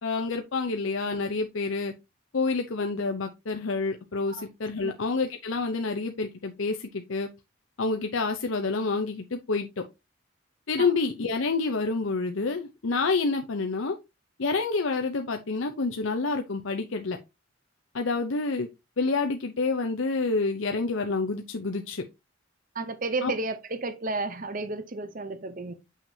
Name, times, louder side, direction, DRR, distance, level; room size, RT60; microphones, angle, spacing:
voice 1, 0.0-1.9 2.3-7.3 7.8-9.8 10.7-14.0 14.4-17.2 17.9-18.7 19.0-22.0 23.2-23.3, left 3 dB, 70° left, 0.7 m, -28 dB
voice 2, 22.7-25.7, right 3 dB, 40° right, 0.7 m, -32 dB
7.2 x 5.8 x 2.7 m
head